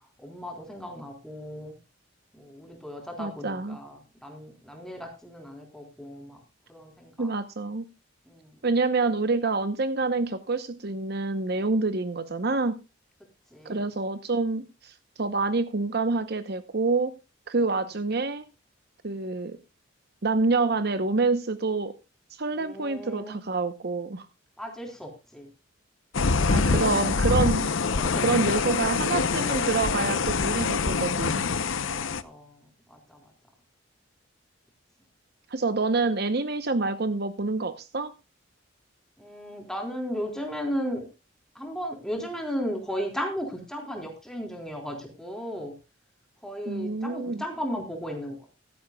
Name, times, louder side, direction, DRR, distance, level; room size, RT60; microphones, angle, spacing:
voice 1, 0.2-1.7 2.3-6.4 6.7-7.3 8.3-8.5 13.5-13.8 22.5-23.3 24.6-25.5 26.3-26.8 28.0-28.7 31.9-32.6 32.9-33.2 39.2-41.0 41.6-45.7 46.4-48.4, equal, 5° left, 2 dB, 3.8 m, -35 dB
voice 2, 3.2-3.8 7.2-7.9 8.6-12.8 13.6-17.1 17.5-18.5 19.0-19.6 20.2-21.9 22.3-24.3 26.5-27.7 28.2-31.4 35.5-38.1 46.7-47.4, right 3 dB, 50° right, 11 dB, 0.8 m, -27 dB
sound 1, 26.1-32.2, left 4 dB, 70° left, 0.7 m, -25 dB
15.5 x 13.0 x 2.3 m, 0.28 s
head